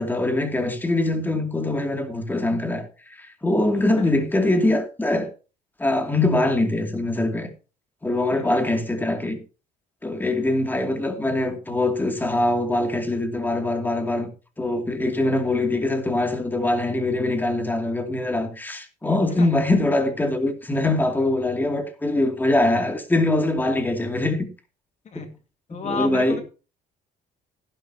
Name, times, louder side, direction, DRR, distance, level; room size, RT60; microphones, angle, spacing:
voice 1, 0.0-5.3 5.8-7.5 8.0-9.4 10.0-14.3 14.6-24.5 25.1-25.3 25.7-26.4, left 2 dB, 10° left, 2.6 m, -23 dB
voice 2, 25.7-26.4, left 5 dB, 45° left, 2.1 m, -31 dB
15.0 x 11.5 x 2.9 m
cardioid pair, 110°, 17 cm